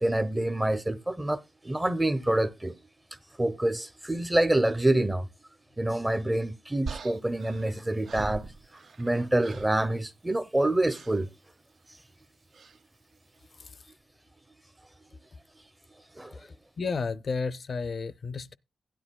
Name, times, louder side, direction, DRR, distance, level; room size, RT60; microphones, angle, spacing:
voice 1, 0.0-2.8 3.4-5.3 5.8-8.5 9.0-11.3 16.2-16.4, right 1 dB, 15° right, 0.6 m, -27 dB
sound 1, 6.9-9.1 9.4-9.8 10.9-11.2 12.5-12.8, right 4 dB, 65° right, 0.7 m, -41 dB
voice 2, 16.4-18.6, left 4 dB, 50° left, 0.5 m, -32 dB
16.0 x 10.0 x 2.2 m
cardioid pair, 85°, 0 cm